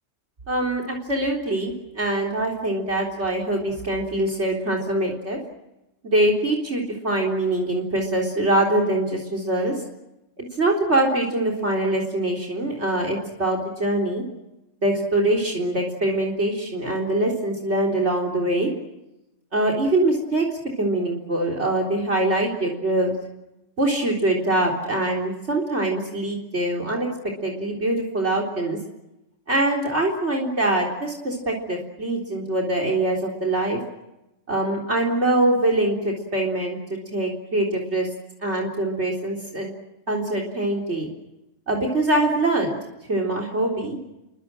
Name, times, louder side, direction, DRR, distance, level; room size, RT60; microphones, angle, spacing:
voice 1, 0.5-5.4 6.0-9.7 10.4-14.2 14.8-18.7 19.5-23.1 23.8-27.1 27.4-28.8 29.5-33.8 34.5-38.1 38.4-39.7 40.1-41.1 41.7-42.8 43.1-44.0, right 1 dB, 65° right, 3 dB, 4.3 m, -23 dB
29.5 x 24.0 x 7.6 m, 0.94 s
omnidirectional pair, 1.3 m